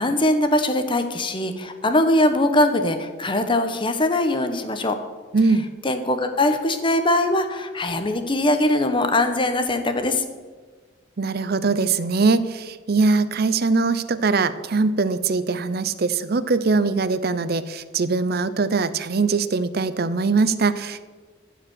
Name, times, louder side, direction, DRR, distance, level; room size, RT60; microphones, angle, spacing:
voice 1, 0.0-4.9 5.8-10.2, left 1 dB, 25° left, 8 dB, 1.0 m, -21 dB
voice 2, 5.3-5.6 11.2-21.0, right 4 dB, 55° right, 14 dB, 0.6 m, -22 dB
14.5 x 5.0 x 7.8 m, 1.4 s
head